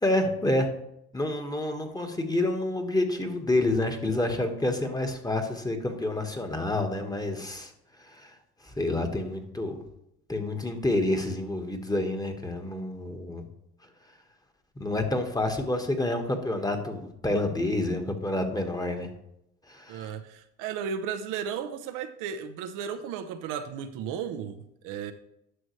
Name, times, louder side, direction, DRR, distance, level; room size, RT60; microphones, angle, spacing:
voice 1, 0.0-0.7 1.1-7.7 8.1-8.3 8.6-9.8 10.3-13.4 14.8-19.1 19.7-20.1, left 1 dB, 10° left, 5 dB, 1.5 m, -28 dB
voice 2, 19.9-25.1, right 7 dB, 70° right, 7 dB, 0.8 m, -34 dB
11.0 x 6.1 x 3.2 m, 0.78 s
supercardioid pair, 75°, 33 cm